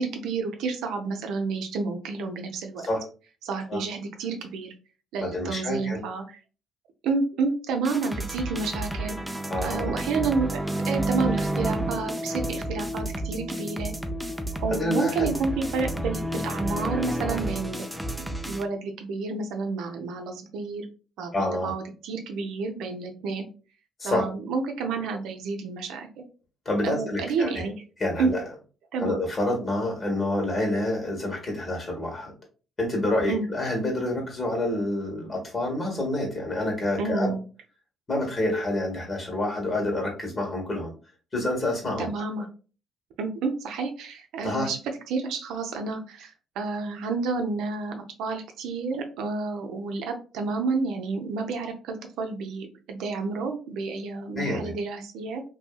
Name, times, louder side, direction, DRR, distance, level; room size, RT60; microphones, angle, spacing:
voice 1, 0.0-2.8 3.4-4.7 5.1-6.2 7.0-9.2 9.6-10.6 10.9-13.9 14.6-17.9 18.2-20.9 21.2-23.5 24.0-26.2 26.8-27.7 28.2-28.3 28.9-29.1 33.3-33.5 37.0-37.4 42.0-42.5 43.2-44.8 45.1-55.4, right 4 dB, 75° right, 4 dB, 0.5 m, -30 dB
voice 2, 5.2-6.0 9.5-9.9 14.7-15.3 21.3-21.7 24.0-24.2 26.6-27.6 28.0-28.4 29.0-32.3 32.8-37.3 38.1-40.9 41.3-42.1 44.4-44.7 54.3-54.7, left 1 dB, 40° left, 1 dB, 1.4 m, -28 dB
sound 1, 7.8-18.6, right 1 dB, 5° right, 0.5 m, -30 dB
2.7 x 2.7 x 2.3 m, 0.36 s
hypercardioid pair, 50°, 0 cm